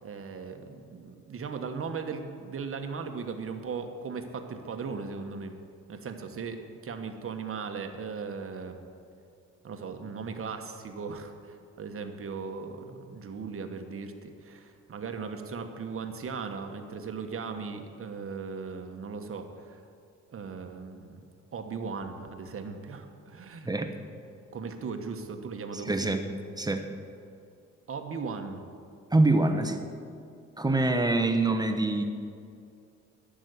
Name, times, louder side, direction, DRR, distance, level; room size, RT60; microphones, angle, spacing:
voice 1, 0.0-5.5 5.9-8.8 9.6-19.8 20.3-21.2 21.5-23.7 24.5-26.2 27.9-28.6, right 5 dB, 45° right, 6 dB, 1.3 m, -38 dB
voice 2, 25.7-26.2 26.6-26.8 29.1-29.8 30.6-32.0, right 2 dB, 15° right, 6 dB, 1.0 m, -25 dB
12.0 x 6.3 x 8.3 m, 2.4 s
cardioid pair, 90°, 30 cm